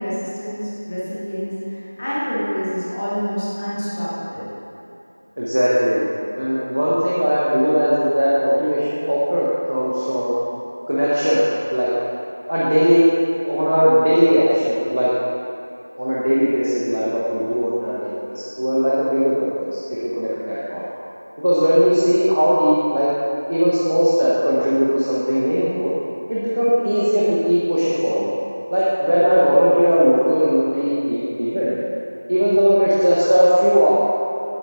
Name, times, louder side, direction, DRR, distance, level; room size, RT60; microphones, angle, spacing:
voice 1, 0.0-4.5, equal, 5° left, -10 dB, 0.5 m, -26 dB
voice 2, 5.4-6.1 6.3-10.4 10.9-11.5 11.7-11.9 12.5-13.1 13.4-15.1 16.0-20.8 21.4-23.1 23.5-25.9 26.3-28.3 28.7-31.7 32.3-33.9, equal, 30° right, -8 dB, 0.8 m, -18 dB
7.9 x 7.4 x 3.5 m, 2.8 s
figure-of-eight pair, 180°, 0 cm